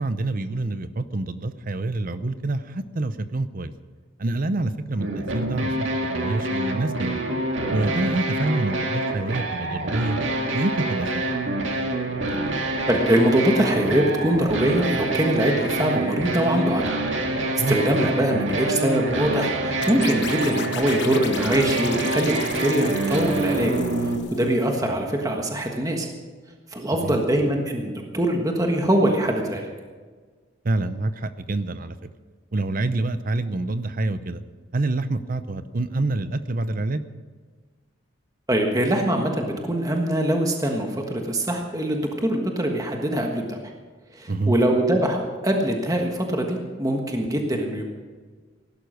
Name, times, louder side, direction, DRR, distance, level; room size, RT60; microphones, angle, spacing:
voice 1, 0.0-3.7 4.2-7.2 7.7-10.2 10.5-11.1 17.6-17.8 26.9-27.2 30.6-31.9 32.5-34.4 34.7-37.0 44.3-44.5, right 2 dB, 45° right, 13 dB, 0.7 m, -27 dB
sound 1, 5.0-24.2, right 2 dB, 65° right, 2.0 m, -26 dB
voice 2, 12.9-16.8 17.3-23.7 24.3-26.1 26.7-29.7 38.5-43.7 44.1-47.9, right 1 dB, 15° right, 2 dB, 1.4 m, -23 dB
sound 2, 19.8-24.6, left 9 dB, 60° left, 1.1 m, -37 dB
17.0 x 11.5 x 6.5 m, 1.5 s
head